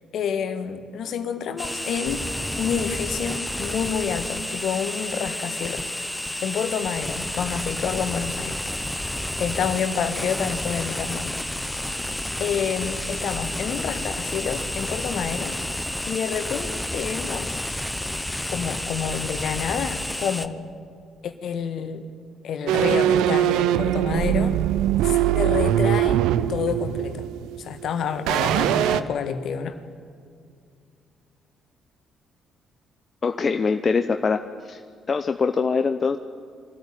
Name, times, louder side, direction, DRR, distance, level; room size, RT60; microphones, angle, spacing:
voice 1, 0.1-2.3 2.6-5.9 6.4-8.5 9.4-11.3 12.4-15.5 16.1-17.6 18.5-20.5 21.2-22.0 22.4-24.6 25.0-26.2 26.5-27.3 27.6-29.7, left 7 dB, 65° left, 8 dB, 1.6 m, -28 dB
sound 1, 1.6-20.5, left 1 dB, 10° left, 1.1 m, -30 dB
sound 2, 22.7-27.9 28.3-29.0, right 11 dB, 70° right, 0.6 m, -21 dB
voice 2, 33.2-34.8 35.1-36.2, left 5 dB, 40° left, 7 dB, 0.8 m, -23 dB
23.5 x 13.5 x 9.0 m, 2.3 s
hypercardioid pair, 45°, 0 cm